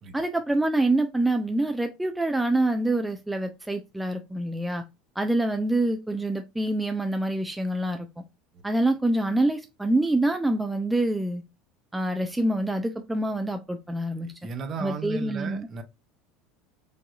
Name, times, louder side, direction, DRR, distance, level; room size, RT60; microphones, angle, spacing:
voice 1, 0.1-4.8 5.2-8.1 8.6-11.4 11.9-14.3 14.8-15.7, right 1 dB, 5° right, 0.5 m, -26 dB
voice 2, 14.2-15.8, right 5 dB, 40° right, 0.9 m, -35 dB
5.3 x 2.7 x 2.4 m
figure-of-eight pair, 75°, 0 cm